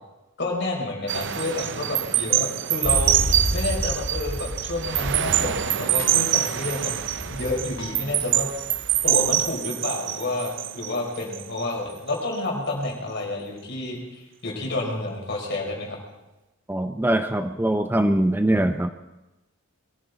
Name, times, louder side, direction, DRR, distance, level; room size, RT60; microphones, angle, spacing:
voice 1, 0.4-3.1 3.5-6.9 7.3-8.5 9.0-16.0, left 2 dB, 55° left, 0 dB, 4.6 m, -29 dB
sound 1, 1.1-11.7 12.1-12.4, right 13 dB, 60° right, 0.5 m, -25 dB
sound 2, 2.8-5.7 6.0-9.5, equal, 80° left, 2.5 m, -32 dB
voice 2, 16.7-18.9, right 1 dB, 10° right, 7 dB, 0.5 m, -22 dB
22.0 x 14.0 x 4.0 m, 1.0 s
head